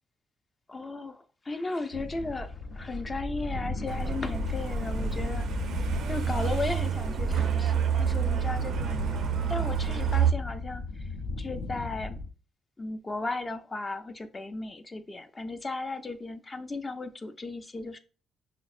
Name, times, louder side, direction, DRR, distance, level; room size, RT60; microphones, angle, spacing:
voice 1, 0.7-5.5 6.0-9.2 9.5-11.1 11.4-12.2 12.8-18.0, left 3 dB, 25° left, 9 dB, 0.5 m, -36 dB
sound 1, 1.9-12.3, left 2 dB, 85° left, 0.6 m, -35 dB
Truck, 3.9-10.3, right 8 dB, 70° right, 0.4 m, -29 dB
5.7 x 2.0 x 2.4 m, 0.35 s
cardioid pair, 90°, 0 cm